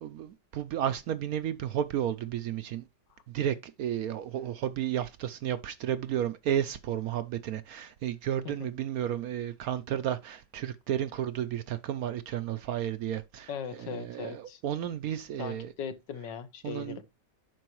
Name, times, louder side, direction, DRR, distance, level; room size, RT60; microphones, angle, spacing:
voice 1, 0.0-2.8 3.3-15.7 16.6-17.0, right 10 dB, 70° right, 0.9 m, -32 dB
voice 2, 13.5-14.6 15.4-17.0, left 7 dB, 80° left, 1.7 m, -39 dB
9.1 x 6.1 x 3.0 m
omnidirectional pair, 1.9 m